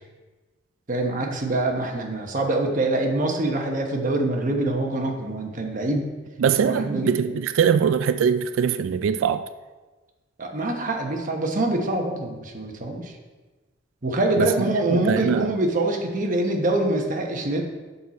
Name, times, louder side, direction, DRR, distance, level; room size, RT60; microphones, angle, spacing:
voice 1, 0.9-6.0 6.5-7.3 10.4-13.1 14.0-17.6, right 2 dB, 40° right, 1.0 m, -25 dB
voice 2, 6.4-9.4 14.4-14.5 14.9-15.6, right 7 dB, 80° right, 0.3 m, -22 dB
6.8 x 6.4 x 4.1 m
head